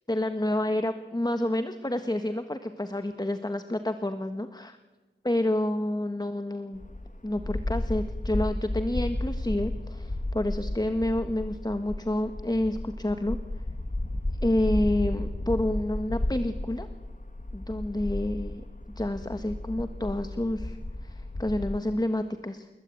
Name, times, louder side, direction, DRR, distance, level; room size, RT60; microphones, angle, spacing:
voice 1, 0.1-4.8 5.2-6.8 7.2-13.4 14.4-16.9 17.5-18.6 19.0-22.7, left 1 dB, 20° left, 8 dB, 1.6 m, -29 dB
sound 1, 6.7-21.8, left 1 dB, 40° left, 2.4 m, -33 dB
29.0 x 21.5 x 9.2 m, 1.2 s
wide cardioid pair, 60°, 20 cm